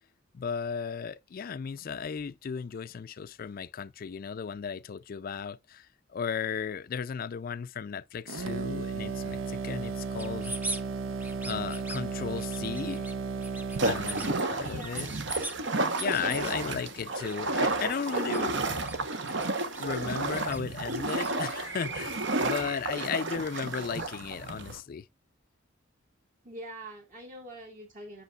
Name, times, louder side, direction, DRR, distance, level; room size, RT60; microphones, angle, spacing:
voice 1, 0.3-10.5 11.4-13.1 13.8-15.1 16.0-18.8 19.8-25.1, left 6 dB, 45° left, 0.4 m, -35 dB
sound 1, 8.3-14.5, right 4 dB, 75° right, 0.7 m, -34 dB
sound 2, 10.2-10.8 11.2-12.0 12.4-13.1 13.4-14.3 14.6-15.6 16.0-16.6 17.1-17.4 17.6-19.0 19.2-21.3, right 1 dB, 10° right, 0.6 m, -40 dB
sound 3, 13.8-24.8, right 2 dB, 60° right, 1.0 m, -31 dB
voice 2, 14.4-15.1 16.1-16.7 22.6-22.7 22.9-23.1 26.4-28.2, right 1 dB, 40° right, 1.9 m, -43 dB
8.1 x 6.3 x 2.3 m
head